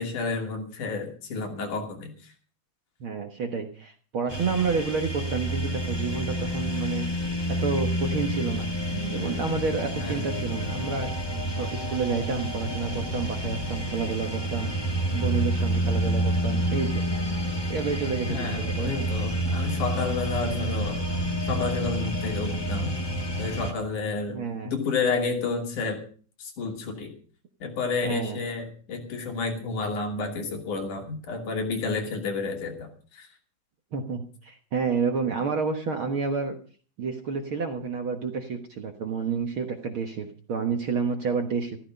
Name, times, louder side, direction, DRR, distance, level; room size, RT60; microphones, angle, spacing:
voice 1, 0.0-2.1 10.0-10.3 18.3-21.0 21.5-23.0 23.4-26.0 26.4-27.1 27.6-33.3, left 4 dB, 70° left, 2 dB, 4.2 m, -30 dB
voice 2, 3.0-7.1 7.6-8.6 8.9-11.1 11.6-14.7 15.1-17.1 17.7-19.1 24.3-24.7 28.0-28.4 33.9-36.6 37.0-41.8, right 5 dB, 50° right, 4 dB, 1.7 m, -29 dB
sound 1, 4.3-23.7, equal, 25° left, 0.5 m, -29 dB
14.5 x 14.5 x 5.3 m, 0.42 s
omnidirectional pair, 3.8 m